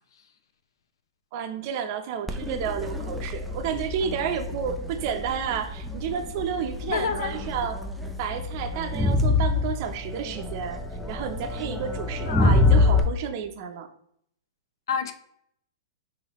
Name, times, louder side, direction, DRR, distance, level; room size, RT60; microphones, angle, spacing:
voice 1, 1.3-7.8 8.2-10.8 11.1-13.9, right 7 dB, 45° right, 0.7 m, -31 dB
Crowd, 2.3-13.0, left 3 dB, ahead, 0.5 m, -26 dB
voice 2, 6.8-7.3 12.3-12.6 14.9-15.1, left 6 dB, 80° left, 0.6 m, -28 dB
5.6 x 2.8 x 3.0 m
hypercardioid pair, 135°, 2 cm